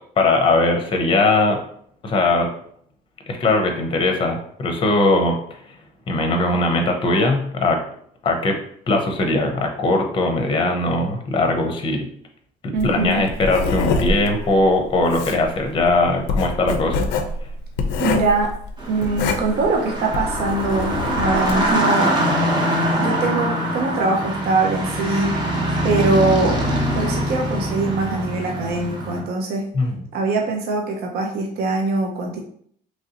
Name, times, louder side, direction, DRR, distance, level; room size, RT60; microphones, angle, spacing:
voice 1, 0.2-1.6 2.0-2.5 3.3-5.4 6.1-7.8 8.2-8.6 8.9-12.1 12.8-17.0 29.7-30.0, left 2 dB, 30° left, 4 dB, 0.6 m, -20 dB
voice 2, 12.7-13.2 18.0-18.6 18.9-22.1 23.0-25.6 25.8-26.6 26.9-29.7 30.1-32.4, right 3 dB, 65° right, 1 dB, 0.5 m, -22 dB
Writing, 12.8-21.7, left 4 dB, 85° left, 0.4 m, -25 dB
sound 1, 18.8-29.2, equal, 30° right, 0.8 m, -23 dB
3.0 x 2.6 x 2.7 m, 0.63 s
cardioid pair, 110°, 17 cm